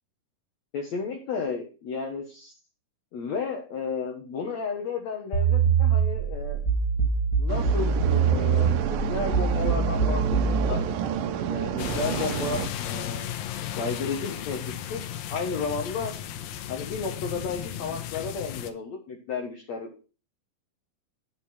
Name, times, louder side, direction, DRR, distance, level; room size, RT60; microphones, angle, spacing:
voice 1, 0.7-2.5 3.1-6.6 7.4-10.8 11.5-13.3 13.8-14.6 14.9-16.1 16.7-19.9, left 5 dB, 60° left, 1 dB, 2.2 m, -33 dB
sound 1, 5.3-10.8, right 6 dB, 15° left, 1.3 m, -23 dB
sound 2, 7.5-12.7, right 9 dB, 75° right, 2.5 m, -30 dB
sound 3, 11.8-18.7, left 10 dB, 75° left, 2.5 m, -34 dB
9.9 x 8.2 x 4.3 m, 0.35 s
omnidirectional pair, 4.2 m